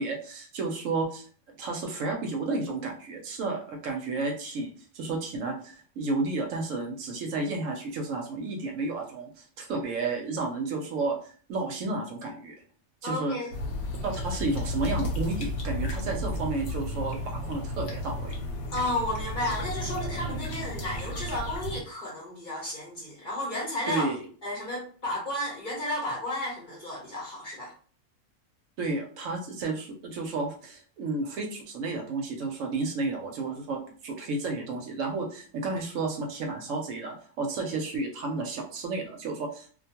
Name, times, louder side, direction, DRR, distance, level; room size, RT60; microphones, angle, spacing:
voice 1, 0.0-11.2 11.5-12.5 13.0-13.4 14.0-18.3 23.9-24.2 28.8-39.7, right 3 dB, 70° right, 2 dB, 0.9 m, -32 dB
voice 2, 13.0-13.5 18.7-24.1 24.4-27.7, left 1 dB, 40° left, -5 dB, 0.8 m, -32 dB
sound 1, 13.5-21.8, left 1 dB, 80° left, 1.1 m, -33 dB
2.4 x 2.2 x 2.8 m, 0.42 s
omnidirectional pair, 1.5 m